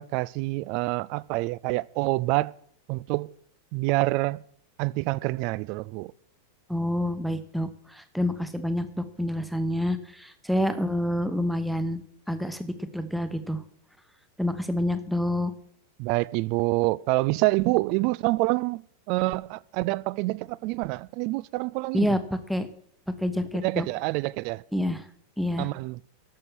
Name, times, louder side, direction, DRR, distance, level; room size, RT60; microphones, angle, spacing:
voice 1, 0.0-2.5 2.9-3.3 3.7-4.4 4.8-6.1 16.0-18.8 19.1-22.2 23.6-24.6 25.6-26.0, right 21 dB, 45° right, 0.3 m, -27 dB
voice 2, 6.7-12.0 12.3-13.6 14.4-15.5 21.9-22.2 22.5-22.7 23.2-23.9 24.7-25.1 25.4-25.7, left 1 dB, ahead, 1.0 m, -28 dB
12.0 x 6.8 x 6.1 m
figure-of-eight pair, 90°, 0 cm